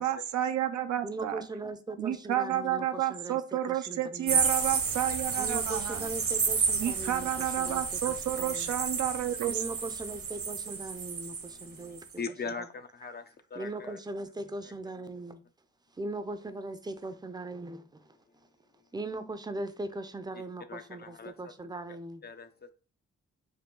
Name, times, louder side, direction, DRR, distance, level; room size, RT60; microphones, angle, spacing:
voice 1, 0.0-1.4 2.0-6.1 6.8-9.6, right 11 dB, 80° right, 0.5 m, -31 dB
voice 2, 1.0-4.4 5.4-8.7 9.5-12.0 12.6-12.7 13.5-15.4 16.0-18.1 18.9-22.2, right 2 dB, 15° right, 0.5 m, -39 dB
sound 1, 4.3-11.6 12.0-12.1, right 5 dB, 50° right, 0.8 m, -31 dB
voice 3, 11.4-14.0 14.6-14.7 20.7-21.3 22.2-22.7, left 5 dB, 35° left, 0.5 m, -41 dB
4.6 x 2.3 x 3.7 m
cardioid pair, 65°, 29 cm